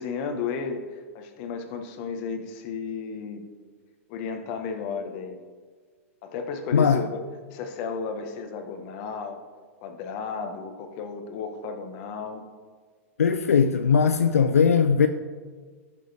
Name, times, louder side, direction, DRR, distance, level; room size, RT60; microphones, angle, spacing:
voice 1, 0.0-3.4 4.1-5.4 6.2-7.2 7.5-9.4 9.8-12.4, left 5 dB, 50° left, 1.4 m, -33 dB
voice 2, 13.2-15.1, left 6 dB, 85° left, 0.4 m, -19 dB
15.5 x 6.6 x 3.5 m
hypercardioid pair, 105°, 8 cm